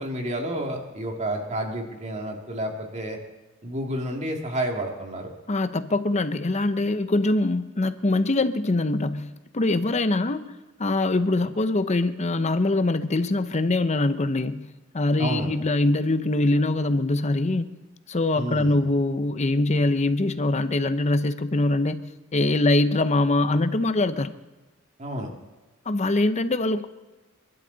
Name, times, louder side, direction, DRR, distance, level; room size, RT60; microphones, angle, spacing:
voice 1, 0.0-3.2 3.6-5.3 15.2-15.5 18.4-18.8 25.0-25.3, right 1 dB, 35° right, 2 dB, 2.4 m, -30 dB
voice 2, 5.5-17.7 18.1-24.3 25.9-26.9, left 2 dB, 35° left, 11 dB, 0.7 m, -23 dB
29.5 x 12.0 x 4.0 m, 1.2 s
head